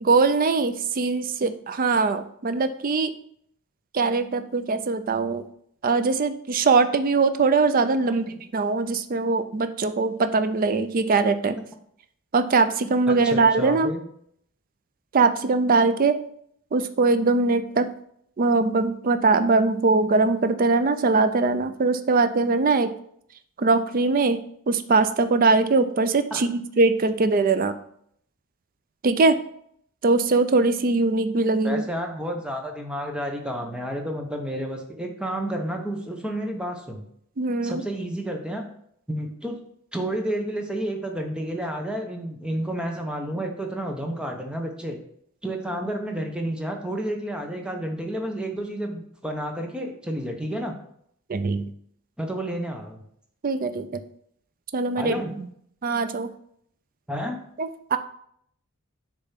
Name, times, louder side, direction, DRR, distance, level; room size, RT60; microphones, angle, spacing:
voice 1, 0.0-3.1 3.9-5.4 5.8-11.6 12.3-13.9 15.1-16.2 16.7-17.9 18.4-22.9 23.6-24.4 24.7-27.7 29.0-29.4 30.0-31.8 37.4-37.8 51.3-51.7 53.4-54.0 54.7-55.2 55.8-56.3 57.6-58.0, right 3 dB, 40° right, 10 dB, 0.4 m, -21 dB
voice 2, 13.1-14.0 26.3-26.4 31.6-37.1 37.6-38.6 39.1-39.5 39.9-45.0 45.4-50.7 52.2-53.0 55.0-55.3 57.1-57.4, right 1 dB, 5° right, 2 dB, 0.8 m, -30 dB
6.7 x 3.4 x 5.7 m, 0.68 s
head